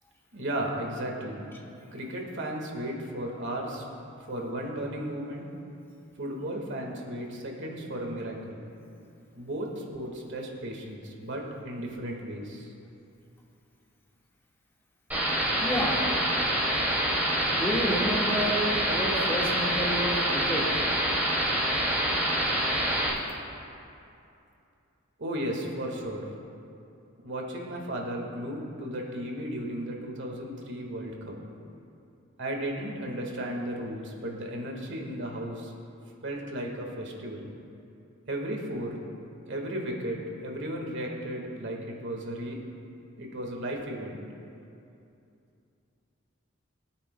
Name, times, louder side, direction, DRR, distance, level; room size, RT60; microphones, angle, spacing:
voice 1, 0.3-1.4 1.9-3.8 4.3-5.5 6.2-8.6 9.3-12.7 25.2-26.3 27.2-31.4 32.4-35.7 36.2-37.5 38.2-39.0 39.5-42.6 43.2-44.2, right 1 dB, 60° right, 0 dB, 1.6 m, -35 dB
sound 1, 15.1-23.1, equal, 10° right, 2.3 m, -26 dB
voice 2, 15.6-16.1 17.5-20.7, equal, 10° left, -3 dB, 1.6 m, -30 dB
23.0 x 8.9 x 2.2 m, 2.7 s
head